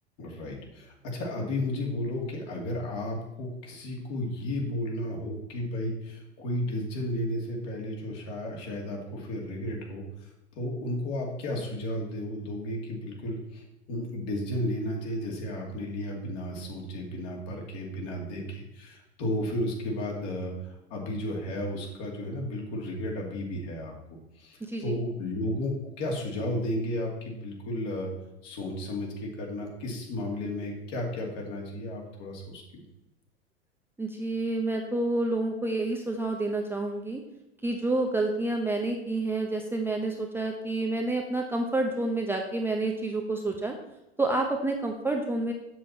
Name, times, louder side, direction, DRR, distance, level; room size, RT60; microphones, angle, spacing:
voice 1, 0.2-23.9 24.4-25.7 26.0-28.1 28.4-32.8, left 1 dB, 50° left, 0 dB, 2.5 m, -33 dB
voice 2, 24.6-25.0 34.0-37.2 37.6-43.8 44.2-45.5, right 2 dB, 5° right, 1 dB, 0.7 m, -29 dB
7.4 x 6.9 x 4.4 m, 0.93 s
hypercardioid pair, 95°, 33 cm